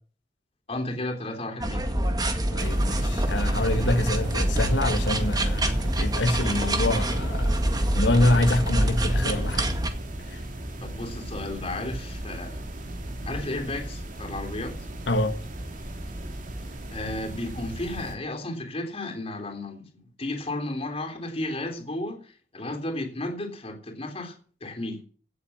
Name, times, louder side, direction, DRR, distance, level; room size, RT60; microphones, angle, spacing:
voice 1, 0.7-1.9 10.8-12.7 13.3-14.8 16.9-24.3 24.6-25.0, left 2 dB, 35° left, 3.5 m, -33 dB
sound 1, 1.6-9.9, right 1 dB, 20° right, 1.8 m, -25 dB
voice 2, 2.5-9.7 10.3-10.4 15.1-15.3, left 1 dB, 85° left, 1.7 m, -26 dB
sound 2, 2.6-18.1, right 1 dB, 45° right, 3.1 m, -37 dB
17.0 x 8.1 x 7.2 m
head